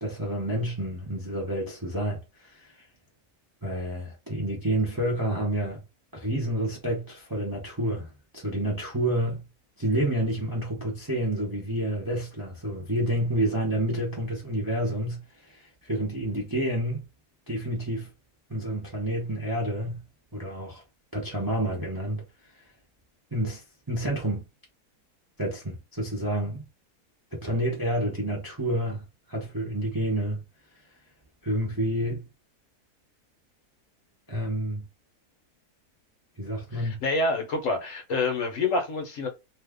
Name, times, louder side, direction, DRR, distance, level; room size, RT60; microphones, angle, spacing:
voice 1, 0.0-2.9 3.6-5.8 6.1-8.1 8.3-9.4 9.8-17.0 17.5-18.1 18.5-20.0 20.3-20.8 21.1-22.2 23.3-24.4 25.4-26.6 27.3-29.0 29.3-30.4 31.4-32.3 34.3-34.8 36.4-37.0, right 1 dB, 20° right, 0.5 m, -29 dB
voice 2, 36.7-39.3, left 3 dB, 60° left, 1.1 m, -27 dB
2.7 x 2.3 x 3.5 m
omnidirectional pair, 1.7 m